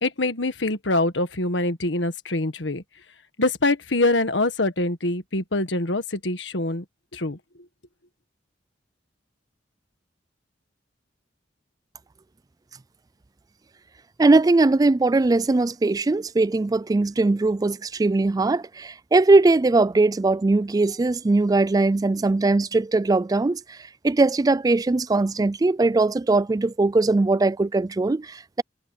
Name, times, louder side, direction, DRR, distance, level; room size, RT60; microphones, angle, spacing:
voice 1, 0.0-2.8 3.4-6.8 7.1-7.4, left 2 dB, 80° left, 1.6 m, -24 dB
voice 2, 14.2-23.8 24.0-28.6, right 3 dB, 20° right, 0.3 m, -20 dB
head